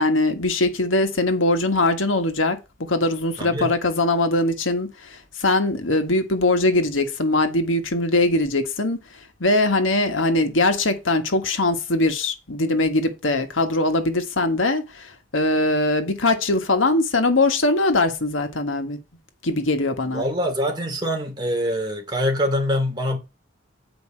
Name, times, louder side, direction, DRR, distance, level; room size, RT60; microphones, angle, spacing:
voice 1, 0.0-9.0 9.4-19.0 19.4-20.3, left 2 dB, 90° left, 1.6 m, -21 dB
voice 2, 3.4-3.7 20.1-23.2, equal, 20° right, 2.7 m, -24 dB
9.6 x 5.1 x 4.7 m
head